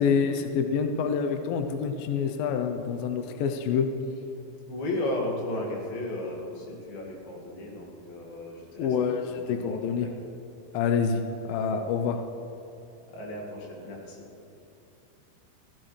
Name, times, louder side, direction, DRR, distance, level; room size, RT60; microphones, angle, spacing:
voice 1, 0.0-3.9 8.8-10.1 10.7-12.2, left 6 dB, 80° left, 6 dB, 2.1 m, -27 dB
voice 2, 4.7-8.9 9.3-10.1 13.1-14.2, left 1 dB, 65° left, -2 dB, 3.6 m, -34 dB
16.0 x 15.5 x 3.2 m, 2.8 s
omnidirectional pair, 4.8 m